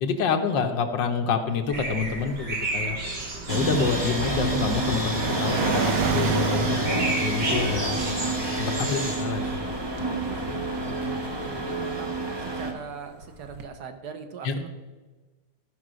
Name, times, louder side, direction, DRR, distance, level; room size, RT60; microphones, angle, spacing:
voice 1, 0.0-3.0 3.5-6.9 7.2-8.0 8.6-9.5 14.4-14.5, left 5 dB, 75° left, 6 dB, 1.6 m, -27 dB
sound 1, 1.7-10.4, right 1 dB, 45° right, 2.6 m, -34 dB
sound 2, 1.7-12.4 13.2-13.6, right 4 dB, 85° right, 1.7 m, -34 dB
sound 3, 3.5-12.7, right 2 dB, 15° right, 1.1 m, -28 dB
voice 2, 10.8-12.1 12.4-14.7, right 6 dB, 65° right, 7 dB, 1.4 m, -40 dB
13.5 x 5.5 x 6.2 m, 1.2 s
omnidirectional pair, 2.0 m